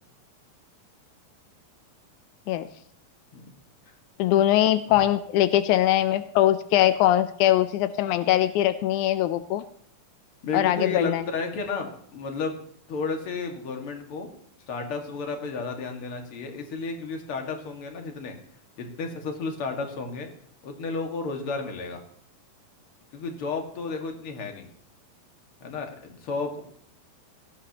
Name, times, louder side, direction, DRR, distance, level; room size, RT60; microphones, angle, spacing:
voice 1, 4.2-9.6 10.5-11.2, left 13 dB, 90° left, 12 dB, 1.7 m, -22 dB
voice 2, 10.4-12.6 12.9-14.3 14.7-18.4 18.8-20.3 20.6-22.0 23.1-24.7 25.6-26.6, left 4 dB, 45° left, 4 dB, 2.3 m, -32 dB
17.5 x 13.0 x 2.9 m, 0.63 s
omnidirectional pair, 4.2 m